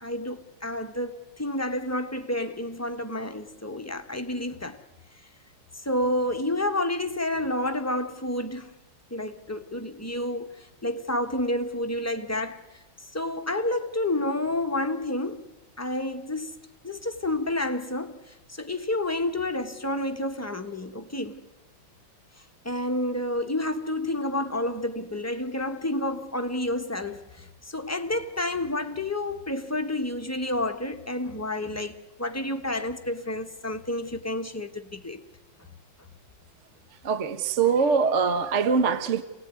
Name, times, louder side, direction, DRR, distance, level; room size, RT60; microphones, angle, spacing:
voice 1, 0.0-4.8 5.8-8.7 9.1-12.8 13.1-15.4 15.8-16.6 16.8-21.4 22.6-35.2, left 1 dB, 10° left, 0.9 m, -30 dB
voice 2, 37.0-39.2, right 5 dB, 45° right, 1.1 m, -23 dB
28.0 x 18.0 x 9.5 m
omnidirectional pair, 2.2 m